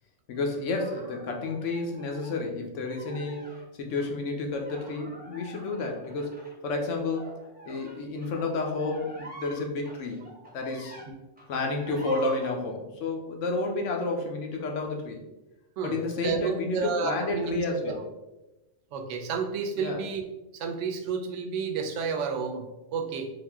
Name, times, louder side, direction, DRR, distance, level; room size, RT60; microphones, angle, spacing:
voice 1, 0.3-3.5 3.8-6.3 6.6-7.3 7.7-10.9 11.5-15.2 15.8-18.0 19.8-20.0, left 3 dB, 85° left, 2 dB, 1.0 m, -31 dB
sound 1, 0.7-2.4 2.8-3.6 4.0-4.1 4.5-11.1 11.4-12.5, equal, 10° right, 0.7 m, -46 dB
voice 2, 15.8-17.9 18.9-20.3 20.5-23.3, right 5 dB, 80° right, 5 dB, 0.9 m, -31 dB
3.6 x 2.6 x 3.5 m, 1.0 s
omnidirectional pair, 1.3 m